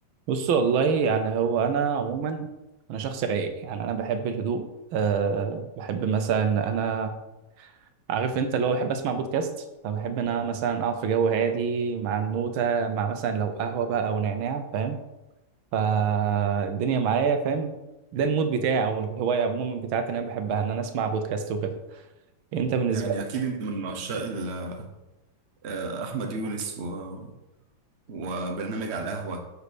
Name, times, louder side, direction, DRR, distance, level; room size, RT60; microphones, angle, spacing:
voice 1, 0.3-2.5 2.9-7.2 7.6-7.7 8.1-9.5 9.8-15.0 15.7-17.7 18.1-21.8 22.5-23.2, right 6 dB, 85° right, 7 dB, 1.7 m, -26 dB
voice 2, 22.9-24.9 25.6-27.3 28.1-29.4, right 3 dB, 40° right, 4 dB, 1.2 m, -32 dB
6.6 x 5.6 x 6.1 m, 0.97 s
omnidirectional pair, 2.2 m